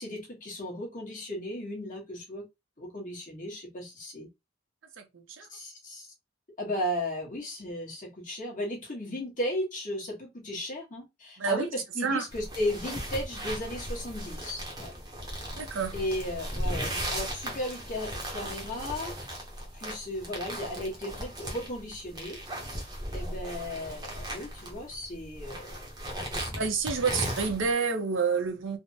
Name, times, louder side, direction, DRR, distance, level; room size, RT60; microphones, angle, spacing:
voice 1, 0.0-2.5 2.8-4.3 5.5-6.1 6.6-14.9 15.9-19.1 19.7-22.4 23.1-25.7, left 1 dB, 40° left, 1.2 m, -35 dB
voice 2, 5.0-5.5 11.4-11.7 12.0-12.2 15.5-15.9 26.5-28.8, right 5 dB, 70° right, 0.7 m, -29 dB
sound 1, 12.3-27.7, right 1 dB, 20° right, 0.8 m, -37 dB
3.3 x 2.1 x 2.7 m
head